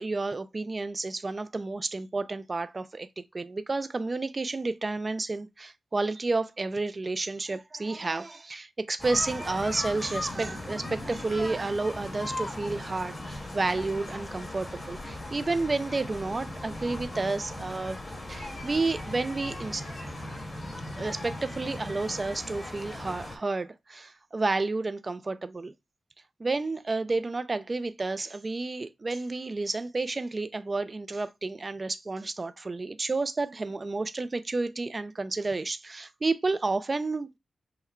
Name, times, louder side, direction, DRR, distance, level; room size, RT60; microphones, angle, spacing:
voice 1, 0.0-18.0 18.3-19.9 21.0-25.7 26.4-37.4, right 3 dB, 30° right, 0.3 m, -31 dB
sound 1, 9.0-23.4, left 1 dB, 25° left, 1.4 m, -38 dB
5.7 x 2.1 x 4.3 m
wide cardioid pair, 140°, 0 cm